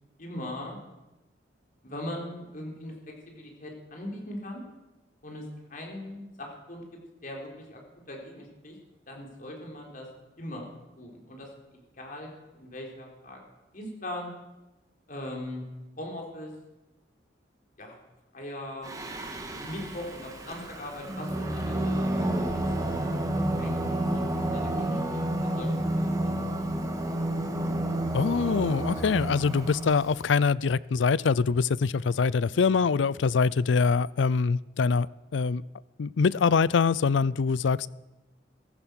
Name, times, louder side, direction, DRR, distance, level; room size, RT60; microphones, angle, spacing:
voice 1, 0.2-0.8 1.8-2.9 3.3-4.6 5.2-5.4 5.7-6.8 7.2-7.8 8.1-8.8 9.1-10.1 10.4-10.7 11.0-11.5 12.0-13.4 13.7-14.3 15.1-15.6 16.0-16.5 17.8-18.0 18.3-18.9 19.5-22.7 23.0-23.3 23.6-26.5, left 1 dB, 50° left, 3.7 m, -40 dB
Singing, 18.8-30.2, right 1 dB, 20° right, 1.8 m, -30 dB
voice 2, 28.1-35.1 35.3-35.6 36.0-37.9, left 5 dB, 85° left, 0.4 m, -24 dB
15.5 x 15.0 x 6.3 m
head